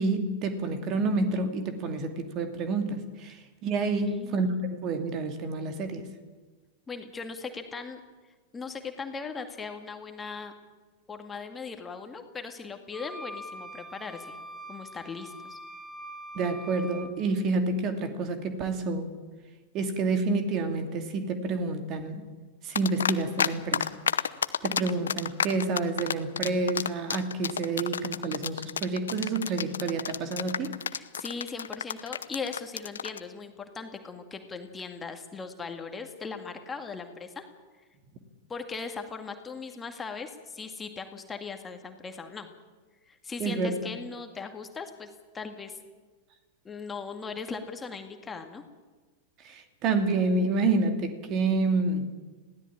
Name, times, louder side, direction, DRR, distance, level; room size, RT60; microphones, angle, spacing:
voice 1, 0.0-6.1 16.3-19.1 19.7-22.2 22.6-23.9 24.6-30.7 43.4-43.9 49.4-52.1, right 3 dB, 35° right, 7 dB, 2.5 m, -28 dB
voice 2, 4.1-4.5 6.9-8.0 8.5-10.5 11.1-14.4 14.7-15.6 30.9-37.4 38.5-42.5 43.1-45.1 45.3-45.8 46.6-48.6, left 5 dB, 15° left, 5 dB, 2.1 m, -39 dB
sound 1, 12.9-17.1, equal, 10° right, 1.8 m, -43 dB
sound 2, 22.8-23.5 23.7-33.2, left 7 dB, 70° left, 0.9 m, -29 dB
21.0 x 16.5 x 8.8 m, 1.4 s
figure-of-eight pair, 90°, 0 cm